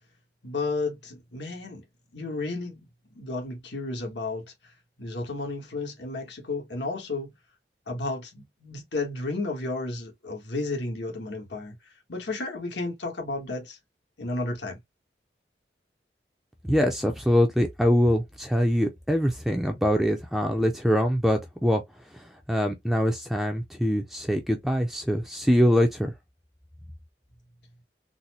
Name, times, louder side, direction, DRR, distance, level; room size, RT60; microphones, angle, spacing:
voice 1, 0.4-1.8 2.1-2.8 3.1-4.7 5.0-7.3 7.9-13.8 14.2-14.8, left 2 dB, 80° left, 1.2 m, -32 dB
voice 2, 16.7-21.8 22.1-26.1, equal, ahead, 0.4 m, -24 dB
3.9 x 2.0 x 2.8 m
head